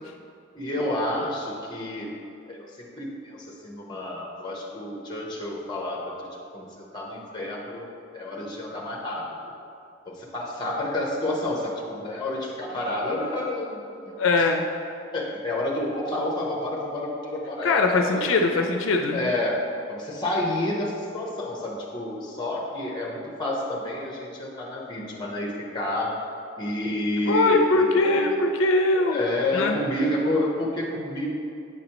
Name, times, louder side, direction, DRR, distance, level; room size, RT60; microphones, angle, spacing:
voice 1, 0.5-2.2 2.5-6.1 6.5-9.3 10.1-13.8 14.1-14.5 15.1-18.6 19.1-19.6 19.9-26.2 26.6-28.4 29.0-31.3, left 1 dB, 20° left, -3 dB, 0.9 m, -29 dB
voice 2, 14.2-14.6 17.6-19.3 27.3-29.2 29.5-29.8, left 3 dB, 75° left, 3 dB, 0.4 m, -21 dB
8.5 x 5.1 x 2.9 m, 2.5 s
head